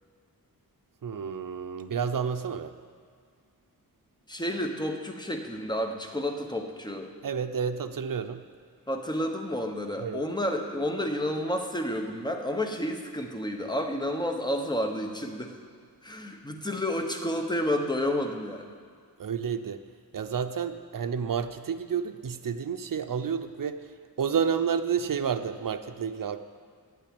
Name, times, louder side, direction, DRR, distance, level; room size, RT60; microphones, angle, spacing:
voice 1, 1.0-2.7 7.2-8.4 10.0-10.2 19.2-19.8 20.1-23.8 24.2-26.4, right 7 dB, 55° right, 8 dB, 0.7 m, -30 dB
voice 2, 4.3-7.1 8.9-15.6 16.0-18.7, left 1 dB, 10° left, 3 dB, 1.1 m, -30 dB
9.1 x 8.6 x 8.6 m, 2.1 s
wide cardioid pair, 110°, 39 cm